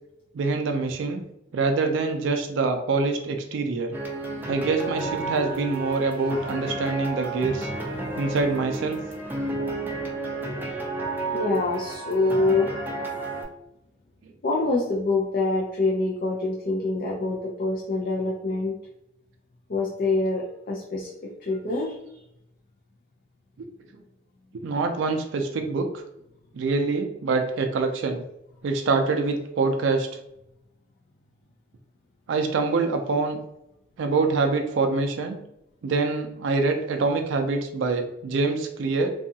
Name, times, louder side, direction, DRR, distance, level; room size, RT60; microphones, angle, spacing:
voice 1, 0.3-1.2 1.5-4.0 4.5-7.7 8.2-9.0 23.6-23.7 24.5-26.0 26.5-28.2 28.6-30.1 32.3-33.4 34.0-35.4 35.8-39.1, right 3 dB, 80° right, 5 dB, 0.3 m, -25 dB
sound 1, 3.9-13.4, right 2 dB, 10° right, 0.4 m, -32 dB
voice 2, 5.0-5.6 7.9-8.4 9.3-10.3 11.3-12.7 14.4-18.8 19.7-22.2, left 2 dB, 50° left, -3 dB, 0.4 m, -26 dB
2.7 x 2.3 x 2.6 m, 0.83 s
head